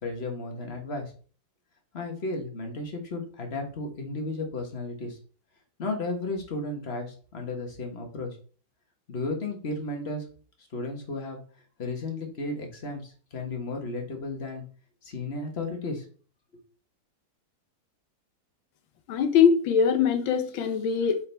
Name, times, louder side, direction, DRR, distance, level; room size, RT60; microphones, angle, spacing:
voice 1, 0.0-1.1 1.9-5.2 5.8-8.4 9.1-10.2 10.7-11.4 11.8-14.6 15.0-16.0, left 2 dB, 35° left, 1.4 m, -34 dB
voice 2, 19.1-21.2, left 7 dB, 85° left, 1.6 m, -22 dB
8.1 x 4.4 x 3.4 m
omnidirectional pair, 2.1 m